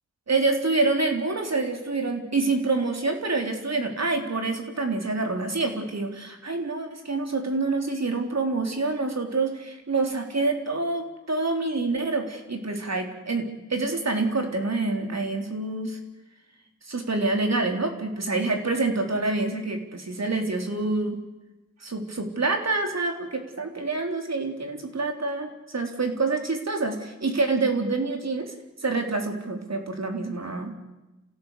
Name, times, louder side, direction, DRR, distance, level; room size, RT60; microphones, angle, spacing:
voice 1, 0.3-16.0 16.9-21.2 21.8-28.5 28.8-30.7, right 3 dB, 55° right, 4 dB, 3.6 m, -27 dB
28.0 x 16.5 x 8.3 m, 1.1 s
cardioid pair, 55°, 32 cm